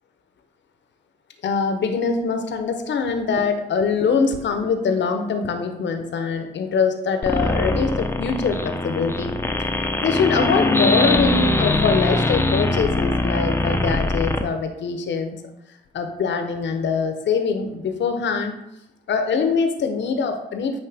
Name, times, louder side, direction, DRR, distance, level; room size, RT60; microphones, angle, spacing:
voice 1, 1.4-9.4 10.0-15.4 15.9-18.5 19.1-20.8, left 5 dB, 65° left, 6 dB, 0.8 m, -23 dB
sound 1, 7.2-14.4, left 2 dB, 10° left, 0.7 m, -22 dB
8.7 x 3.1 x 3.5 m, 0.87 s
hypercardioid pair, 40°, 20 cm